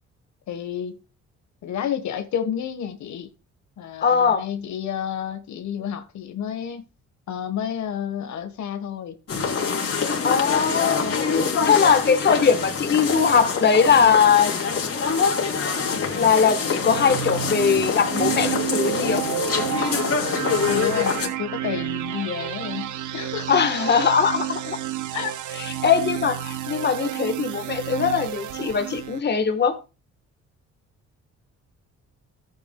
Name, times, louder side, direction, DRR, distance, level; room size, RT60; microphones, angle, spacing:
voice 1, 0.5-1.0 1.6-3.3 3.8-6.9 7.3-9.2 20.7-23.5 25.1-25.3, left 9 dB, 70° left, 1.3 m, -30 dB
voice 2, 4.0-4.4 10.2-11.3 11.6-14.6 16.1-19.2 23.5-24.8 25.8-29.7, left 6 dB, 35° left, 1.2 m, -20 dB
sound 1, 9.3-21.3, left 5 dB, 50° left, 2.9 m, -25 dB
sound 2, 16.6-29.2, right 12 dB, 80° right, 0.9 m, -30 dB
14.5 x 8.8 x 2.2 m
cardioid pair, 90°, 30 cm